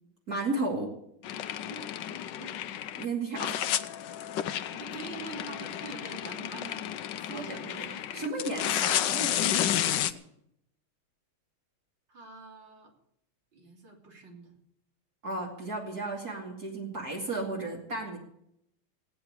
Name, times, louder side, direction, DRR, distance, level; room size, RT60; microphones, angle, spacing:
voice 1, 0.3-0.9 3.0-3.8 7.3-7.7 8.1-9.5 9.7-10.1 15.2-18.2, right 2 dB, 45° right, -1 dB, 3.1 m, -34 dB
sound 1, 1.2-3.1 3.4-10.1, left 11 dB, 70° left, 1.3 m, -31 dB
voice 2, 2.1-2.5 4.7-8.9 12.1-12.9 13.5-14.6, right 3 dB, 60° right, 1 dB, 3.8 m, -46 dB
17.0 x 9.1 x 8.2 m, 0.76 s
omnidirectional pair, 2.3 m